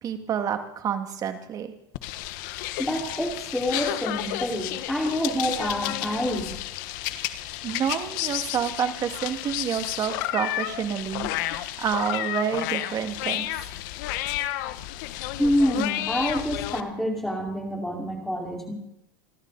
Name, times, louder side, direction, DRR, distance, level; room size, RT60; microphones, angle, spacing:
voice 1, 0.0-1.7 7.1-11.3 11.8-13.6, right 8 dB, 35° right, 7 dB, 2.3 m, -29 dB
sound 1, 1.9-16.8, left 15 dB, 65° left, 1.2 m, -31 dB
voice 2, 2.8-6.5 15.4-18.7, equal, ahead, 0 dB, 4.8 m, -27 dB
29.5 x 11.5 x 4.2 m, 0.76 s
supercardioid pair, 130°, 11 cm